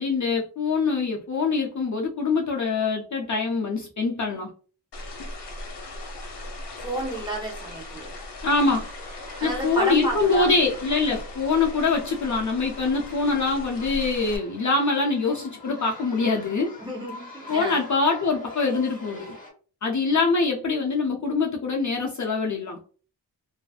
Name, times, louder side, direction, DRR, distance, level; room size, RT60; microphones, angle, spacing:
voice 1, 0.0-4.5 8.4-8.8 9.4-16.7 17.5-19.4 19.8-22.8, left 4 dB, 45° left, 1 dB, 0.5 m, -24 dB
sound 1, 4.9-14.4, left 1 dB, 75° left, 0.8 m, -39 dB
voice 2, 6.8-8.2 9.4-10.6 16.8-17.8, right 1 dB, 10° right, -2 dB, 0.8 m, -31 dB
sound 2, 8.4-19.5, left 2 dB, 20° left, 1.0 m, -44 dB
2.5 x 2.4 x 2.3 m, 0.39 s
wide cardioid pair, 125°, 41 cm